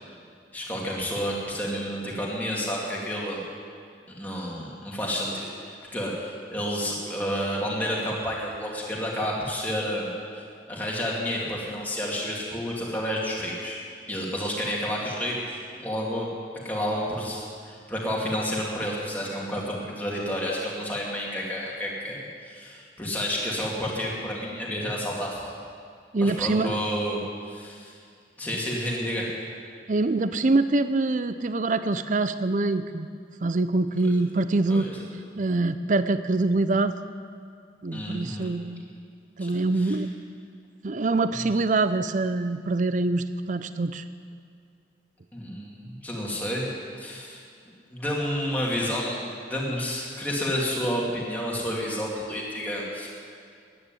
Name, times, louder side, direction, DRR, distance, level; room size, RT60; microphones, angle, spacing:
voice 1, 0.5-3.4 4.2-5.5 5.9-13.8 14.1-16.3 16.6-25.5 26.2-28.0 28.4-29.3 34.7-34.9 37.9-38.5 39.4-40.0 45.3-46.7 47.0-47.4 47.9-53.1, equal, 10° left, -4 dB, 2.7 m, -30 dB
voice 2, 26.1-26.8 29.9-33.1 33.4-34.9 35.4-37.0 37.8-38.8 39.4-40.1 40.8-44.0, right 2 dB, 40° right, 12 dB, 0.5 m, -24 dB
13.5 x 10.0 x 9.1 m, 2.2 s
head